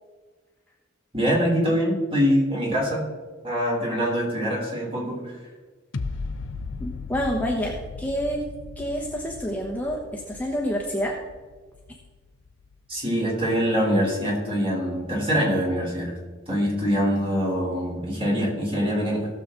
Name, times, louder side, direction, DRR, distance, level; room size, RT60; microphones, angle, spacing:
voice 1, 1.1-3.0 3.4-5.4 12.9-16.2 16.5-19.3, equal, 30° right, -3 dB, 3.6 m, -24 dB
sound 1, 5.9-13.0 13.4-13.5, left 3 dB, 85° left, 0.7 m, -37 dB
voice 2, 6.8-8.4 8.8-11.2, equal, 10° left, -1 dB, 1.1 m, -28 dB
18.5 x 6.8 x 3.8 m, 1.4 s
head